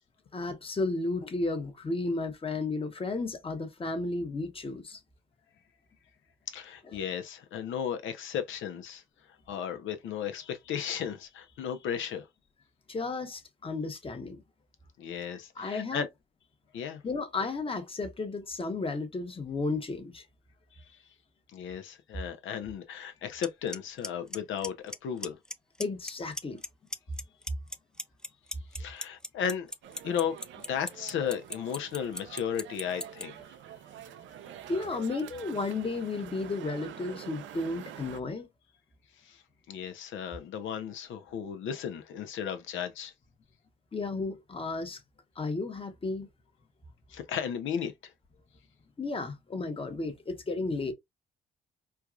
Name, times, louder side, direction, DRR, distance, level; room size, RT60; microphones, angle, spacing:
voice 1, 0.3-5.0 6.9-7.0 12.9-14.4 15.6-16.1 17.0-20.2 25.8-26.6 34.7-38.5 43.9-45.0 45.4-46.3 49.0-50.9, left 3 dB, 25° left, 1.0 m, -33 dB
voice 2, 6.5-9.0 9.5-12.3 15.0-16.1 16.7-17.0 21.5-25.4 28.7-29.7 30.0-30.4 30.7-33.4 39.2-39.4 39.7-43.1 47.1-47.9, left 8 dB, 75° left, 0.7 m, -35 dB
Clock, 23.4-23.5 23.7-24.1 24.3-25.0 25.2-25.5 25.8-26.7 26.9-33.2, left 1 dB, 5° left, 0.4 m, -35 dB
sound 1, 29.8-38.2, right 9 dB, 75° right, 0.5 m, -47 dB
4.5 x 2.3 x 2.4 m
cardioid pair, 90°, 20 cm